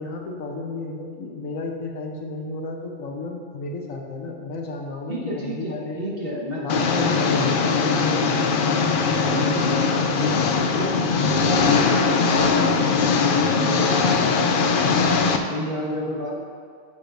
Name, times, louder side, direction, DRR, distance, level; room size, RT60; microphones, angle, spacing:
voice 1, 0.0-6.0 6.6-7.9, left 3 dB, 75° left, 1 dB, 1.3 m, -33 dB
voice 2, 5.1-8.3 9.2-16.4, left 1 dB, 45° right, -5 dB, 1.7 m, -30 dB
Engine, 6.7-15.4, left 5 dB, 60° left, 0.5 m, -20 dB
9.4 x 7.1 x 2.6 m, 2.1 s
omnidirectional pair, 1.4 m